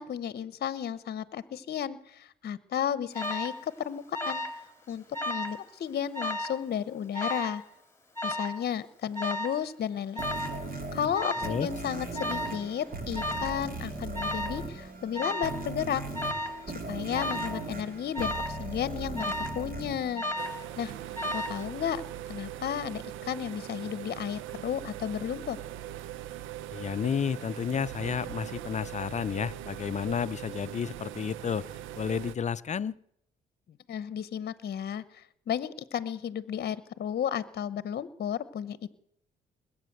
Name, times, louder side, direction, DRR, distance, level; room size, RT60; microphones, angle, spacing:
voice 1, 0.0-4.4 4.9-7.6 8.2-10.2 10.9-16.0 16.9-20.2 20.8-20.9 21.3-22.0 22.3-25.6 33.9-38.9, left 9 dB, 55° left, 17 dB, 0.9 m, -33 dB
Alarm, 3.1-3.6 4.1-4.6 4.9-5.6 6.1-6.6 7.1-7.6 8.2-8.6 9.2-9.6 10.2-10.6 11.2-11.6 12.2-12.6 13.2-13.6 14.1-14.6 15.1-15.6 16.1-16.6 17.1-17.6 18.1-18.6 19.2-19.6 20.2-20.6 21.2-21.6, left 1 dB, 10° left, 2.1 m, -33 dB
sound 1, 10.2-21.0, right 2 dB, 45° right, 3.0 m, -38 dB
sound 2, 20.4-32.4, right 12 dB, 90° right, 0.5 m, -41 dB
voice 2, 26.7-31.7 32.0-32.9, left 7 dB, 35° left, 17 dB, 0.5 m, -31 dB
20.5 x 8.4 x 8.0 m, 0.72 s
cardioid pair, 90°, 20 cm